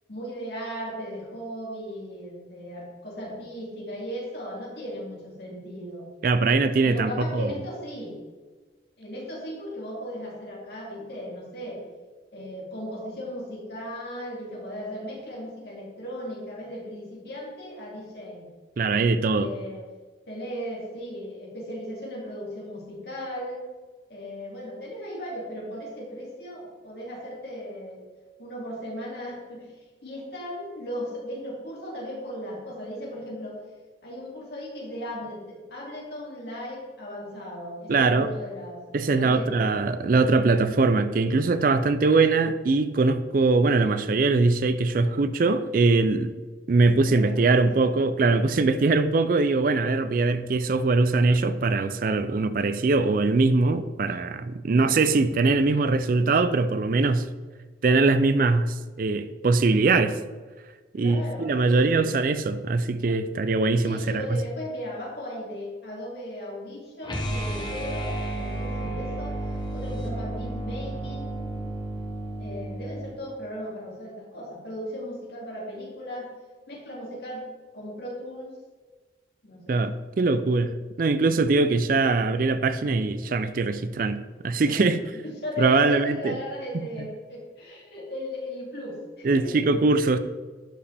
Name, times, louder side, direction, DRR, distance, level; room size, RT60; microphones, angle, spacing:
voice 1, 0.1-6.1 6.8-8.2 9.0-11.8 12.3-18.5 19.2-19.8 20.3-23.6 24.1-28.0 28.4-33.6 34.0-39.9 47.1-47.9 54.7-55.1 61.0-62.1 63.8-69.4 69.7-71.4 72.4-76.3 76.7-77.5 77.7-78.6 79.4-79.7 84.6-84.8 85.1-89.8, equal, 60° left, -4 dB, 2.5 m, -37 dB
voice 2, 6.2-7.5 18.8-19.5 37.9-38.3 38.9-46.3 46.7-57.3 57.8-60.2 60.9-64.4 79.7-85.0 85.6-86.4 86.7-86.9 89.2-90.2, right 3 dB, 50° right, 12 dB, 0.4 m, -22 dB
sound 1, 67.0-73.1, right 1 dB, 25° left, 1.0 m, -32 dB
11.5 x 5.0 x 3.4 m, 1.3 s
head